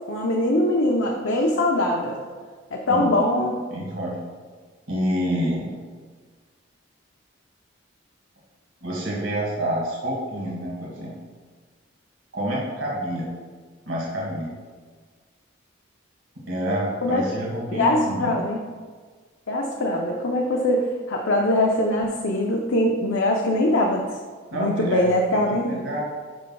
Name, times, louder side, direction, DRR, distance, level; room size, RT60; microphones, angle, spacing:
voice 1, 0.1-2.2 2.7-3.5 17.0-17.2 17.7-18.6 19.5-24.2 24.5-25.8, left 1 dB, 65° left, 0 dB, 0.6 m, -22 dB
voice 2, 3.7-4.2 4.9-5.7 8.8-11.1 12.3-13.3 13.9-14.5 16.5-18.3 24.5-25.0 25.3-26.0, equal, 65° right, -4 dB, 1.7 m, -28 dB
10.0 x 5.5 x 2.3 m, 1.5 s
head